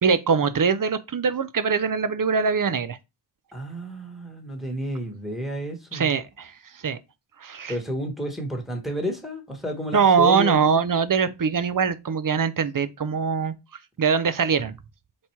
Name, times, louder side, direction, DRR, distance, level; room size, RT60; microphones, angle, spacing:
voice 1, 0.0-3.0 5.9-7.0 7.4-7.7 9.9-13.5 14.0-14.8, right 6 dB, 45° right, 0.5 m, -22 dB
voice 2, 3.5-6.1 7.7-10.8, equal, ahead, 1.2 m, -31 dB
4.2 x 2.2 x 4.3 m
wide cardioid pair, 45°, 47 cm